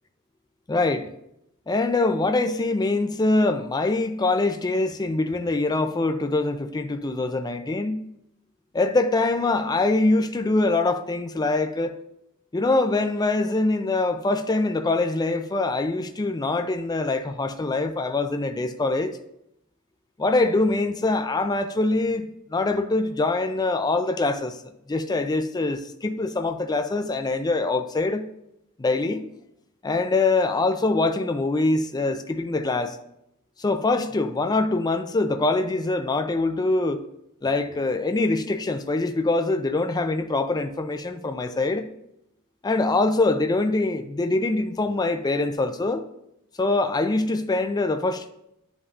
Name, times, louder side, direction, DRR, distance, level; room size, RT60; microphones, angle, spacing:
voice 1, 0.7-1.1 1.7-8.0 8.7-12.0 12.5-19.2 20.2-24.6 24.9-28.3 28.8-29.3 29.8-33.0 33.6-37.0 37.4-41.9 42.6-46.0 46.6-48.3, left 2 dB, 20° left, 0.4 m, -24 dB
11.0 x 5.3 x 2.4 m
head